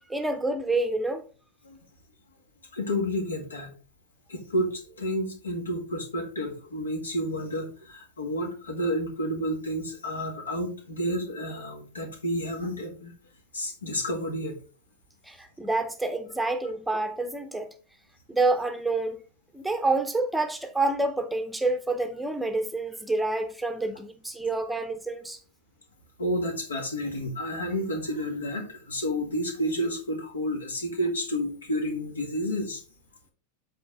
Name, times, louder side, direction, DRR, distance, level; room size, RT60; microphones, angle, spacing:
voice 1, 0.1-1.2 15.2-17.7 18.3-19.2 19.5-25.4, right 2 dB, 5° right, 0.8 m, -28 dB
voice 2, 2.7-3.7 4.3-13.1 13.5-14.6 26.2-32.8, equal, 70° left, 1.8 m, -30 dB
7.9 x 4.7 x 3.7 m
figure-of-eight pair, 90°, 0 cm